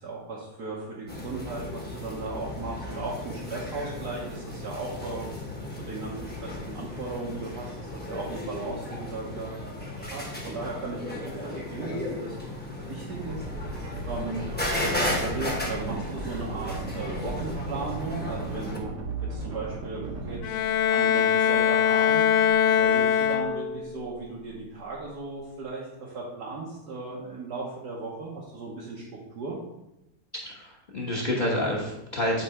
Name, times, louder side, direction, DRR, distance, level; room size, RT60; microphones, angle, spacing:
voice 1, 0.0-5.5 5.8-9.5 10.0-11.2 11.4-12.4 12.9-14.5 14.9-18.9 19.3-20.6 20.9-29.0 29.3-29.6, right 3 dB, 70° right, -5 dB, 1.7 m, -36 dB
sound 1, 1.1-18.8, left 1 dB, 5° left, 1.0 m, -35 dB
sound 2, 13.0-20.4, right 3 dB, 50° right, 1.2 m, -36 dB
Bowed string instrument, 20.4-23.9, left 8 dB, 90° left, 1.3 m, -22 dB
voice 2, 30.4-32.4, left 1 dB, 30° left, -3 dB, 1.0 m, -28 dB
8.7 x 3.3 x 4.8 m, 0.89 s
omnidirectional pair, 1.8 m